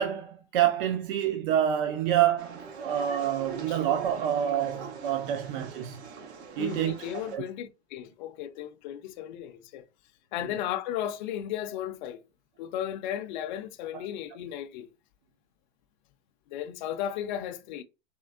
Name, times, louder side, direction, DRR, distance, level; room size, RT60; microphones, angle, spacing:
voice 1, 0.0-6.0 6.6-7.4 13.9-14.1, right 10 dB, 50° right, 0.5 m, -27 dB
sound 1, 2.4-7.4, right 5 dB, 75° right, 1.1 m, -42 dB
voice 2, 6.6-9.9 10.3-12.2 12.6-14.9 16.5-17.8, left 10 dB, 45° left, 0.5 m, -35 dB
4.3 x 3.3 x 2.3 m
supercardioid pair, 160°, 33 cm